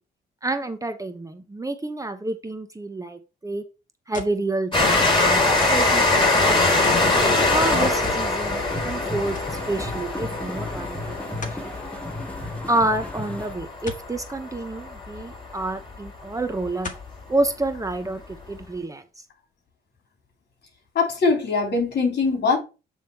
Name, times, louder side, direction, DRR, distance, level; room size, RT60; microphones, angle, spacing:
voice 1, 0.4-3.6 4.1-6.6 7.5-9.4 9.7-11.7 12.7-16.9 17.3-19.0, right 2 dB, 15° right, 0.9 m, -28 dB
sound 1, 4.1-4.5 5.6-5.9 6.8-7.1 8.0-8.3 8.7-8.8 9.3-9.6 11.4-11.7 13.9-14.1 15.6-15.7 16.8-17.1 17.8-17.9, left 3 dB, 40° left, 1.7 m, -37 dB
Train, 4.7-15.9 16.6-16.7 16.9-17.0, left 2 dB, 25° left, 3.8 m, -23 dB
sound 2, 8.4-13.5, left 1 dB, 5° left, 1.6 m, -35 dB
voice 2, 20.9-22.6, left 4 dB, 55° left, 3.2 m, -21 dB
8.7 x 3.6 x 4.6 m
cardioid pair, 90°, 20 cm